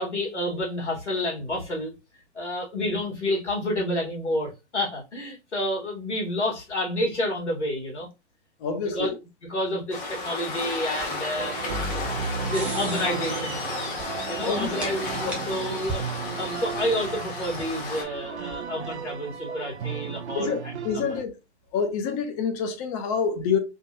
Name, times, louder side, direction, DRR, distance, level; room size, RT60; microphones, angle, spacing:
voice 1, 0.0-1.9 2.3-8.1 8.8-9.1 9.4-11.5 11.9-13.7 14.3-16.1 16.4-21.2, left 1 dB, 85° left, 1.8 m, -29 dB
voice 2, 8.6-9.1 14.4-14.7 15.3-15.4 19.5-19.6 20.3-21.3 21.7-23.6, left 6 dB, 30° left, 0.8 m, -27 dB
Waves surf, 9.9-18.0, left 3 dB, 45° left, 1.4 m, -33 dB
sound 1, 10.5-19.1, right 2 dB, 5° right, 0.6 m, -41 dB
sound 2, 11.4-21.2, right 6 dB, 75° right, 0.5 m, -35 dB
3.7 x 2.5 x 2.8 m
figure-of-eight pair, 125°, 34 cm